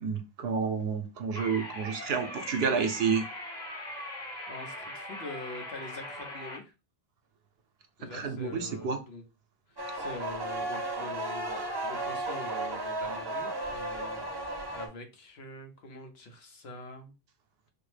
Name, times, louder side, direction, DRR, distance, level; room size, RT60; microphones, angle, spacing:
voice 1, 0.0-3.3 8.1-9.0, right 5 dB, 75° right, 0.9 m, -30 dB
sound 1, 1.3-6.6, left 1 dB, 45° left, 1.2 m, -40 dB
voice 2, 4.5-6.7 8.0-9.2 9.7-17.1, left 2 dB, 90° left, 1.1 m, -44 dB
sound 2, 9.8-14.9, right 2 dB, 30° right, 0.6 m, -34 dB
4.7 x 2.0 x 3.2 m
omnidirectional pair, 1.0 m